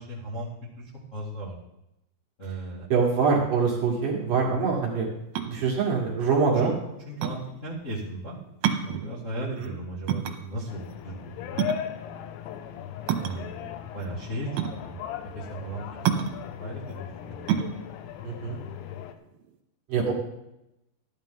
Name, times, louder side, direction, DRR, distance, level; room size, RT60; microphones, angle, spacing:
voice 1, 0.0-1.5 2.4-2.9 4.3-4.6 6.5-6.7 7.0-8.4 8.8-11.8 13.2-15.0 15.3-17.5, right 1 dB, 30° left, -7 dB, 1.4 m, -37 dB
voice 2, 2.9-5.1 5.4-6.7 9.6-9.7 18.2-18.6 19.9-20.1, right 5 dB, 55° right, -1 dB, 2.9 m, -24 dB
sound 1, 5.2-19.6, right 9 dB, 85° right, 3.1 m, -31 dB
sound 2, 10.7-19.1, left 10 dB, 85° left, 3.1 m, -38 dB
14.5 x 11.5 x 3.7 m, 0.88 s
omnidirectional pair, 5.1 m